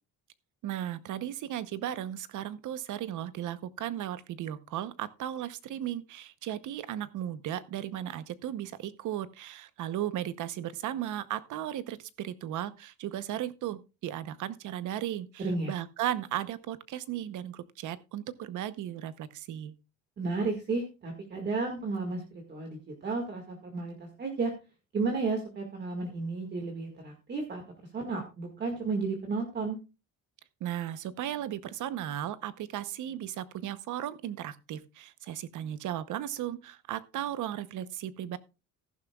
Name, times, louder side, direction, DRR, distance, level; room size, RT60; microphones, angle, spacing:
voice 1, 0.6-19.7 30.6-38.4, right 11 dB, 60° right, 0.9 m, -36 dB
voice 2, 15.4-15.7 20.2-22.2 22.5-24.5 24.9-27.6 27.9-29.8, right 3 dB, 30° right, 1.9 m, -32 dB
14.5 x 11.5 x 2.3 m
cardioid pair, 175°, 34 cm